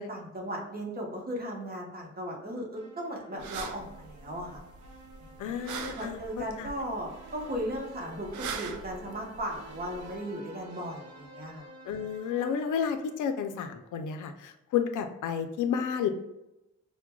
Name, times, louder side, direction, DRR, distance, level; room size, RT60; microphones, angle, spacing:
voice 1, 0.0-4.6 5.2-5.5 6.0-11.7, equal, 30° right, -2 dB, 1.0 m, -37 dB
sound 1, 2.8-14.0, right 2 dB, 55° right, 0.9 m, -51 dB
sound 2, 3.4-10.1, right 5 dB, 80° right, 0.5 m, -42 dB
voice 2, 5.4-6.7 11.9-16.1, left 7 dB, 85° left, 8 dB, 0.5 m, -31 dB
5.9 x 2.2 x 2.2 m, 0.93 s
wide cardioid pair, 140°, 30 cm